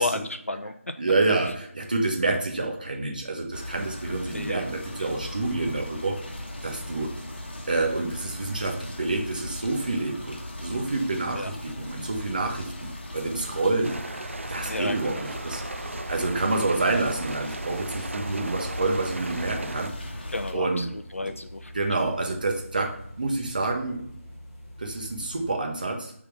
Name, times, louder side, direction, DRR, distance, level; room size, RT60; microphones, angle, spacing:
voice 1, 0.0-0.9 4.3-4.6 5.0-5.1 11.3-11.5 14.7-15.3 20.3-22.1, left 2 dB, 70° left, 8 dB, 0.7 m, -32 dB
voice 2, 1.0-6.2 6.6-7.1 7.7-14.0 14.5-15.6 16.1-19.9 20.5-20.8 21.2-21.3 21.7-24.0 24.8-26.1, right 2 dB, 35° right, 2 dB, 1.0 m, -28 dB
sound 1, 3.5-20.5, left 1 dB, 45° left, 1.3 m, -38 dB
sound 2, 13.8-19.9, right 3 dB, 60° right, 0.3 m, -38 dB
sound 3, 15.2-25.5, left 1 dB, 15° left, 1.0 m, -46 dB
5.6 x 3.6 x 4.7 m, 0.67 s
figure-of-eight pair, 165°, 8 cm